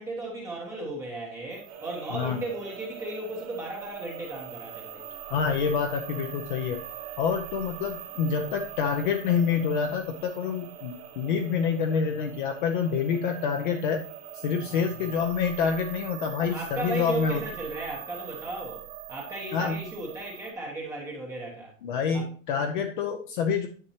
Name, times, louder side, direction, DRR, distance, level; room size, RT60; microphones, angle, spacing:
voice 1, 0.0-5.1 14.6-15.1 16.4-21.7 22.1-22.2, right 2 dB, 5° right, -3 dB, 0.8 m, -36 dB
sound 1, 1.5-20.5, right 12 dB, 45° right, 1.3 m, -43 dB
sound 2, 1.7-16.0, right 8 dB, 30° right, 1.1 m, -46 dB
voice 2, 5.3-6.8 7.2-14.0 14.3-17.4 19.5-19.8 21.8-23.7, left 6 dB, 40° left, 4 dB, 0.6 m, -27 dB
10.0 x 6.8 x 2.9 m, 0.40 s
supercardioid pair, 170°, 40 cm